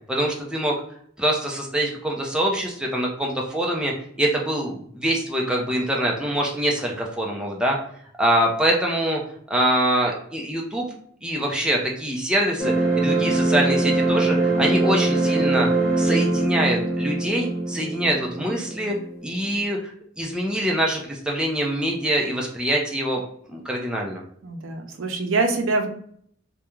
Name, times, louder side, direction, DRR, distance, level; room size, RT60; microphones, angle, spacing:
voice 1, 0.1-0.7 1.2-7.8 8.2-9.2 9.5-10.9 11.2-15.7 16.0-18.9 19.2-23.2 23.5-24.2, right 1 dB, 5° right, -2 dB, 0.4 m, -24 dB
sound 1, 12.6-19.6, right 2 dB, 40° left, 1.0 m, -22 dB
voice 2, 24.4-25.9, right 3 dB, 80° right, 4 dB, 0.5 m, -24 dB
2.4 x 2.2 x 2.9 m, 0.63 s
head